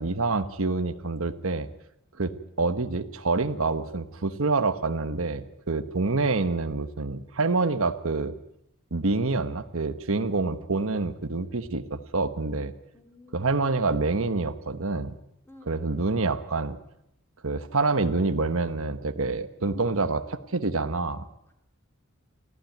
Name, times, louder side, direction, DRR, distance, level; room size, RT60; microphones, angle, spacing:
voice 1, 0.0-1.7 2.2-2.3 2.6-8.3 8.9-12.7 13.3-15.1 15.7-16.8 17.4-21.3, right 3 dB, 75° right, 10 dB, 1.2 m, -27 dB
voice 2, 12.9-13.9 15.5-15.9 21.5-21.6, left 2 dB, 10° left, 3 dB, 3.6 m, -52 dB
24.0 x 15.0 x 9.3 m, 0.82 s
head